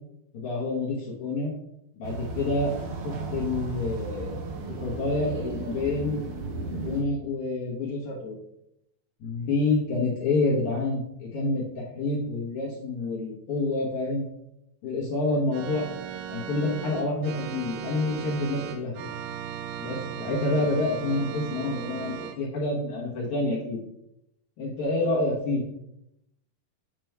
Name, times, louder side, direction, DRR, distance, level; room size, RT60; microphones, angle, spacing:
voice 1, 0.3-1.5 1.9-2.7 3.0-4.4 4.7-6.2 6.8-8.4 9.2-14.2 14.8-15.9 16.3-19.0 19.8-23.8 24.6-25.6, left 2 dB, 65° left, -4 dB, 2.0 m, -28 dB
sound 1, 2.0-7.0, right 3 dB, 70° right, 2.2 m, -34 dB
Organ, 15.5-22.4, right 9 dB, 85° right, 1.9 m, -37 dB
8.9 x 3.0 x 4.5 m, 0.81 s
omnidirectional pair, 4.3 m